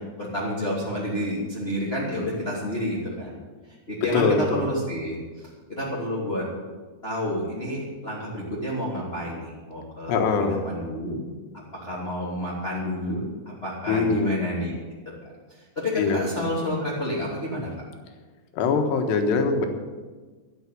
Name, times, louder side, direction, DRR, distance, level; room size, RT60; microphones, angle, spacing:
voice 1, 0.0-3.3 3.7-6.4 7.0-11.2 11.7-14.7 15.5-17.7, equal, 15° left, -6 dB, 2.5 m, -30 dB
voice 2, 4.1-4.7 10.1-10.6 13.9-14.3 16.0-16.5 18.5-19.7, left 4 dB, 80° left, 5 dB, 3.5 m, -23 dB
13.0 x 9.7 x 8.5 m, 1.4 s
omnidirectional pair, 4.9 m